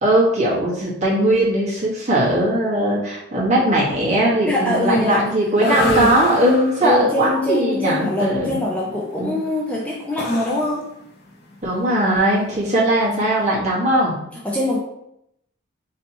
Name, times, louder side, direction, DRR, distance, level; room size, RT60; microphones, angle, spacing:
voice 1, 0.0-8.6 9.2-9.3 11.6-14.1, right 1 dB, 35° right, -6 dB, 1.3 m, -19 dB
voice 2, 4.5-5.3 5.6-6.2 6.8-10.9 14.3-14.8, left 1 dB, 5° left, -4 dB, 0.4 m, -22 dB
sound 1, 5.5-13.5, left 2 dB, 50° left, 0.7 m, -31 dB
3.2 x 2.8 x 4.1 m, 0.79 s
head